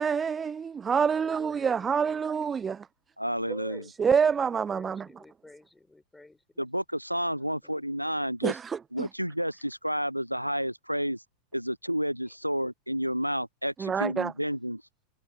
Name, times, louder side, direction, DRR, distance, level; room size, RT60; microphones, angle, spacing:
voice 1, 0.0-2.9 3.5-5.1 8.4-9.1 13.8-14.3, right 6 dB, 20° right, 0.8 m, -27 dB
voice 2, 1.1-2.8 3.4-6.4 7.3-7.9, left 2 dB, 5° left, 6.9 m, -53 dB
voice 3, 3.2-3.8 6.6-8.6 8.9-11.2 11.5-14.8, equal, 90° right, 0.8 m, -30 dB
figure-of-eight pair, 90°, 0 cm